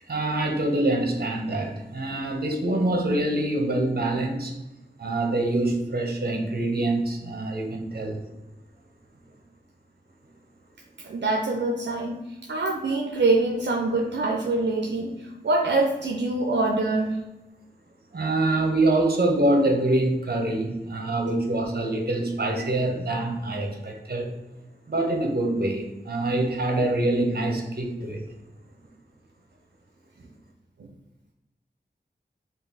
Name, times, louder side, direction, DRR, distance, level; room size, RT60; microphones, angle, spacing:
voice 1, 0.1-4.6 5.0-8.2 18.1-24.3 24.9-28.2, right 2 dB, 60° right, 2 dB, 1.0 m, -25 dB
voice 2, 11.0-12.2 12.5-17.2 30.8-30.9, right 2 dB, 80° right, 1 dB, 0.5 m, -25 dB
5.4 x 2.5 x 3.9 m, 1.0 s
wide cardioid pair, 70°, 18 cm